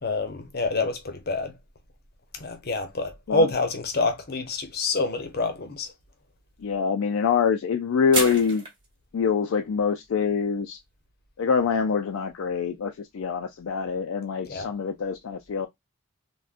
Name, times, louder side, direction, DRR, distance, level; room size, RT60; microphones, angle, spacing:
voice 1, 0.0-1.5 2.4-5.9 14.4-14.7, left 3 dB, 45° left, 0.7 m, -27 dB
sound 1, 5.4-5.5 8.1-8.9, right 3 dB, 20° right, 1.0 m, -28 dB
voice 2, 6.6-8.6 9.1-10.8 11.4-15.7, left 6 dB, 70° left, 0.4 m, -25 dB
3.5 x 2.2 x 2.4 m
head